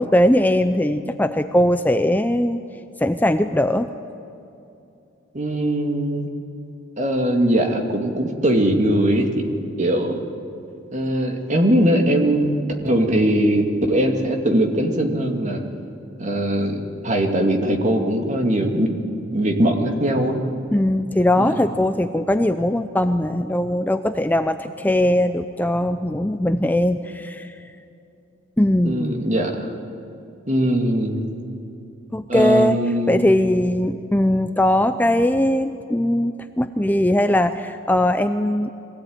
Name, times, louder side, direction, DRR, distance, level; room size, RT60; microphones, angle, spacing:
voice 1, 0.0-2.6 3.0-3.9 20.7-27.5 28.6-29.2 32.1-32.8 33.1-38.7, left 1 dB, 10° left, 9 dB, 0.5 m, -20 dB
voice 2, 5.3-6.3 7.0-10.2 10.9-12.5 12.8-15.6 16.2-18.9 19.3-20.4 21.4-21.6 28.8-29.7 30.5-31.3 32.3-33.2, right 1 dB, 40° right, 3 dB, 2.4 m, -20 dB
23.0 x 17.0 x 9.6 m, 2.8 s
head